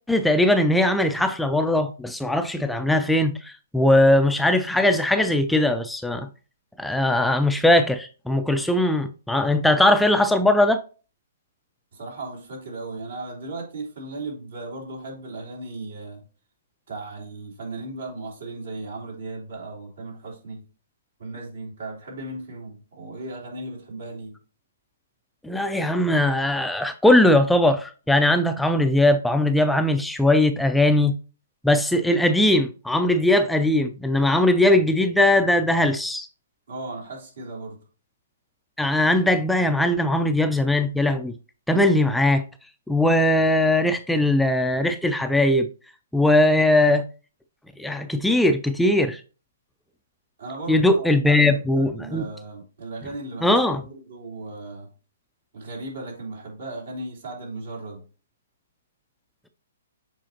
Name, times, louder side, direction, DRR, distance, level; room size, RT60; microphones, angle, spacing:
voice 1, 0.1-6.3 6.8-10.8 25.4-31.1 31.6-36.3 38.8-41.3 41.7-42.4 42.9-45.7 46.1-47.0 47.8-49.2 50.7-52.2 53.4-53.8, left 1 dB, 5° left, 0.4 m, -20 dB
voice 2, 11.9-16.2 16.9-20.6 21.2-24.3 36.7-37.8 50.4-54.9 55.5-58.0, right 2 dB, 75° right, 3.4 m, -36 dB
7.5 x 4.9 x 2.8 m
hypercardioid pair, 140°, 0 cm